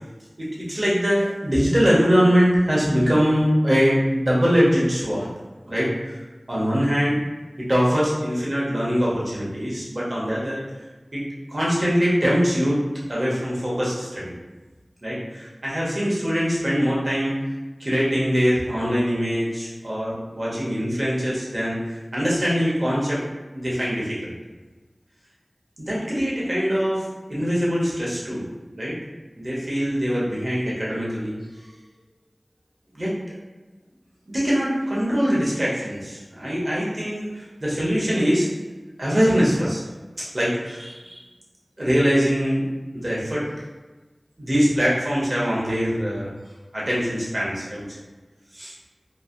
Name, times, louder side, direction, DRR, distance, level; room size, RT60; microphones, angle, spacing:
voice 1, 0.4-5.3 5.7-6.1 6.5-7.3 7.6-10.6 11.1-11.2 11.5-12.8 13.1-14.3 15.0-17.3 17.8-23.2 23.5-24.3 25.8-28.5 28.7-28.9 29.4-31.4 32.9-33.1 34.3-38.5 39.0-39.8 40.3-41.2 41.8-42.7 42.9-43.4 44.4-46.3 46.7-47.8 48.5-48.7, equal, 50° right, -6 dB, 1.0 m, -22 dB
3.1 x 2.5 x 2.6 m, 1.2 s
wide cardioid pair, 45°, 0 cm